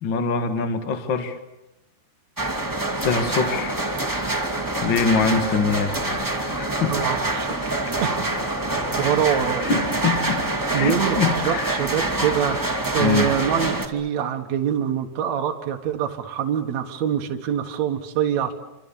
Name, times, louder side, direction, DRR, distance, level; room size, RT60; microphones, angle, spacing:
voice 1, 0.0-1.4 3.0-3.8 4.8-5.9 6.4-7.0 9.6-10.5 10.7-11.8 13.0-13.3, left 4 dB, 55° left, 7 dB, 1.3 m, -24 dB
sound 1, 2.4-13.9, right 2 dB, 10° right, 1.0 m, -26 dB
voice 2, 6.9-7.7 8.0-8.3 9.0-9.6 10.7-18.5, right 9 dB, 60° right, 3 dB, 2.1 m, -25 dB
28.0 x 26.0 x 7.3 m, 0.92 s
omnidirectional pair, 4.9 m